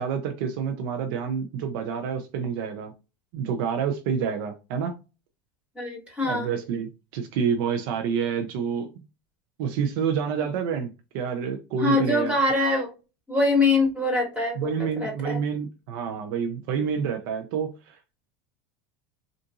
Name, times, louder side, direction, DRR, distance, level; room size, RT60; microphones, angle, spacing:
voice 1, 0.0-2.9 3.3-4.9 6.2-8.9 9.6-12.3 14.6-18.0, right 7 dB, 70° right, 0.6 m, -28 dB
voice 2, 5.8-6.5 11.8-12.9 13.3-14.7 15.0-15.4, left 2 dB, 10° right, 1.9 m, -23 dB
3.7 x 2.6 x 2.4 m
supercardioid pair, 110°, 12 cm